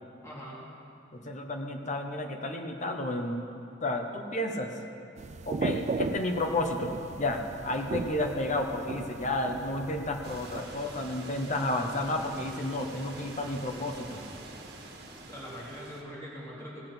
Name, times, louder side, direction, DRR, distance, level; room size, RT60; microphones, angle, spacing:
voice 1, 0.2-0.6 15.2-16.9, equal, 15° left, -7 dB, 2.9 m, -42 dB
voice 2, 1.1-3.4 3.8-4.7 5.4-14.2, left 1 dB, 40° left, 3 dB, 1.1 m, -31 dB
sound 1, 5.2-10.6, right 3 dB, 40° right, 0.4 m, -36 dB
sound 2, 10.2-16.0, right 2 dB, 60° right, 1.5 m, -45 dB
17.5 x 7.4 x 6.0 m, 2.6 s
head